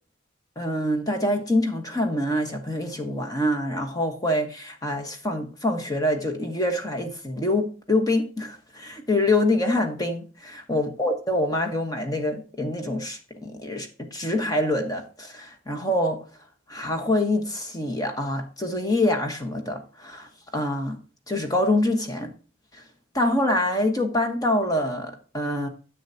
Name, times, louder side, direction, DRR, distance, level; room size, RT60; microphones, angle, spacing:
voice 1, 0.6-16.2 16.7-21.0 21.3-22.3 22.7-22.8 23.1-25.7, left 1 dB, 20° left, 1.2 m, -25 dB
10.0 x 7.3 x 2.8 m
head